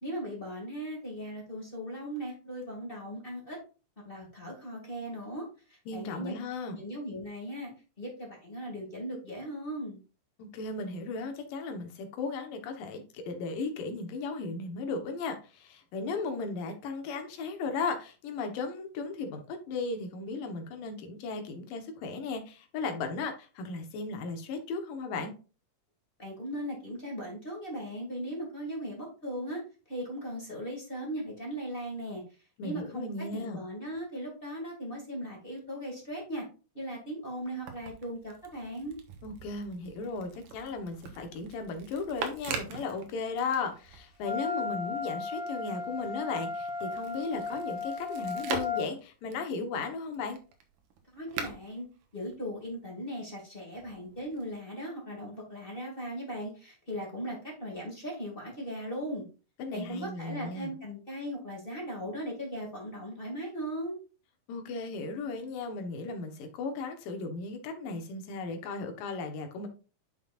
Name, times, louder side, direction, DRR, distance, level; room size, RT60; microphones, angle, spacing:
voice 1, 0.0-3.6 4.0-6.3 6.7-7.7 8.0-10.0 26.2-29.6 29.9-32.2 32.6-36.4 36.7-39.0 51.1-51.9 52.1-59.2 59.7-64.0, equal, 20° left, 1.9 m, -38 dB
voice 2, 5.9-6.8 10.4-25.3 32.6-33.6 39.2-50.4 59.6-60.7 64.5-69.7, left 4 dB, 85° left, 2.9 m, -36 dB
sound 1, 37.4-44.4 44.7-52.9 53.7-54.5, right 6 dB, 85° right, 2.8 m, -43 dB
Wind instrument woodwind instrument, 44.2-48.9, left 5 dB, 55° left, 2.9 m, -35 dB
10.0 x 5.7 x 2.5 m
omnidirectional pair, 3.8 m